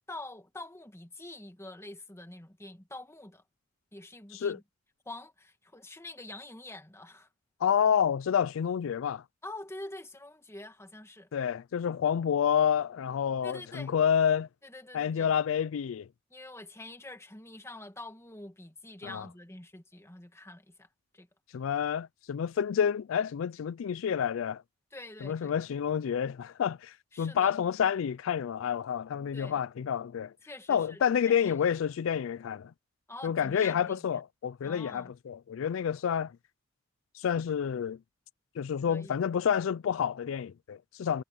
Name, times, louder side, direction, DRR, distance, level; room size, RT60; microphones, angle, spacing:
voice 1, 0.1-3.4 3.9-4.6 5.1-7.3 9.4-11.3 13.4-13.9 14.6-15.3 16.3-20.9 21.1-21.3 24.9-25.5 27.1-27.5 29.3-29.6 30.4-31.0 31.5-31.7 33.1-34.2 34.6-35.1 38.8-39.2, left 2 dB, 15° left, 1.7 m, -46 dB
voice 2, 7.6-9.2 11.3-14.5 14.9-16.1 19.0-19.3 21.5-24.6 25.2-30.3 30.7-32.7 33.2-36.3 37.1-38.0 38.6-41.2, left 8 dB, 85° left, 0.4 m, -29 dB
head